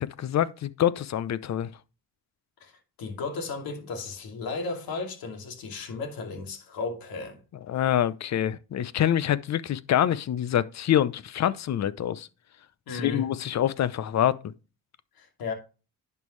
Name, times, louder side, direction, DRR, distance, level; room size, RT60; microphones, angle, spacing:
voice 1, 0.0-1.7 7.7-12.3 12.9-14.4, left 10 dB, 50° left, 0.7 m, -26 dB
voice 2, 2.6-7.4 12.9-13.2 15.2-15.5, left 4 dB, 75° left, 2.6 m, -35 dB
10.5 x 5.5 x 3.2 m
cardioid pair, 105°, 36 cm